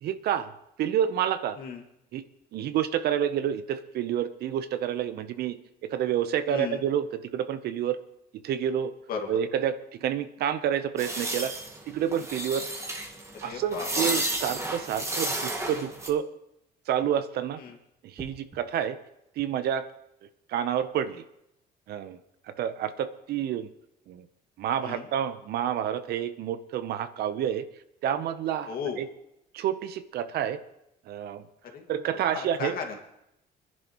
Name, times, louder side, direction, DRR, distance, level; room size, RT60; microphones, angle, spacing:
voice 1, 0.0-0.5 0.8-1.6 2.1-2.2 2.5-5.6 5.9-7.1 7.3-8.0 8.4-8.9 9.3-11.5 11.9-12.7 13.4-16.3 16.9-17.6 18.0-19.0 19.4-19.9 20.5-21.2 21.9-22.2 22.6-23.7 24.1-24.3 24.6-27.6 28.0-29.1 29.5-30.6 31.1-31.4 31.9-32.8, right 9 dB, 70° right, 12 dB, 0.8 m, -29 dB
voice 2, 6.5-6.8 9.1-9.3 13.4-13.9 17.6-17.8 24.8-25.1 28.7-29.0 31.7-31.9 32.3-33.0, left 6 dB, 60° left, 3 dB, 2.1 m, -35 dB
sound 1, 11.0-16.1, right 2 dB, 15° right, 1.7 m, -32 dB
sound 2, 18.1-18.7 20.7-20.9, right 2 dB, 30° right, 2.5 m, -48 dB
24.5 x 10.5 x 3.1 m, 0.83 s
cardioid pair, 110°, 17 cm